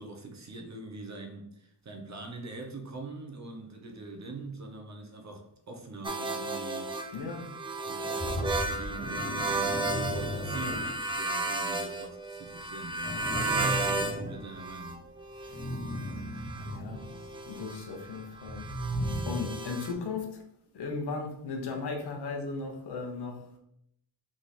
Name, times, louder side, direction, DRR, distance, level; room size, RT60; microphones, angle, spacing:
voice 1, 0.0-7.1 7.8-13.2 13.5-15.0, right 2 dB, 40° right, 0.8 m, -43 dB
sound 1, 6.0-14.2 14.5-19.9, right 2 dB, 15° right, 0.4 m, -34 dB
voice 2, 7.1-7.5 13.3-13.6 15.4-15.6 16.6-17.0 17.5-18.7 19.2-20.4 20.7-23.4, left 4 dB, 70° left, 1.1 m, -36 dB
sound 2, 8.2-11.3 12.6-14.9 15.4-17.3 18.3-19.4, equal, 30° left, 1.2 m, -36 dB
3.7 x 3.1 x 4.1 m
wide cardioid pair, 120°, 42 cm